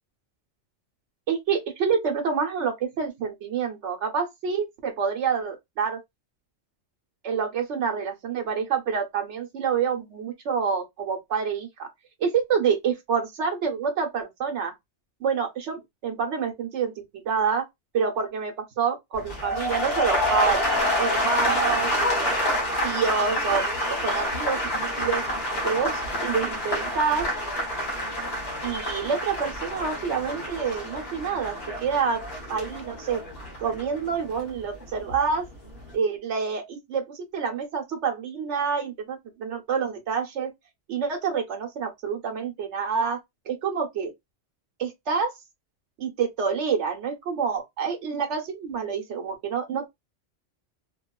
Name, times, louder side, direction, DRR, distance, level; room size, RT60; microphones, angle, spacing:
voice 1, 1.3-6.0 7.2-11.9 12.2-14.7 15.2-16.9 17.2-17.6 17.9-22.4 22.8-23.6 23.9-25.2 25.6-27.3 28.6-32.2 32.5-33.2 33.6-35.5 35.9-40.5 40.9-43.2 43.5-44.1 44.8-45.3 46.0-49.9, right 6 dB, 90° right, 1.1 m, -27 dB
sound 1, 19.1-35.2 35.5-35.9, equal, 65° left, 1.3 m, -28 dB
3.0 x 2.4 x 2.2 m
omnidirectional pair, 1.2 m